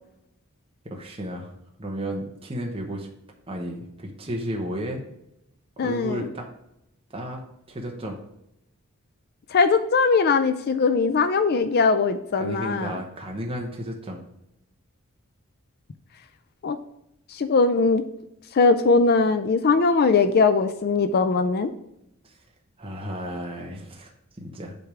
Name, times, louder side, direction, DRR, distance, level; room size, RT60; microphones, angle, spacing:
voice 1, 0.8-1.5 1.8-3.1 3.5-5.0 5.8-6.5 7.1-7.4 7.7-8.2 12.4-14.2 22.2-22.3 22.8-24.1 24.4-24.7, equal, 25° right, 0 dB, 0.9 m, -33 dB
voice 2, 5.8-6.3 9.5-13.0 16.6-16.8 17.3-18.0 18.5-21.7, left 4 dB, 45° left, 10 dB, 0.4 m, -20 dB
7.8 x 3.4 x 4.8 m, 0.82 s
head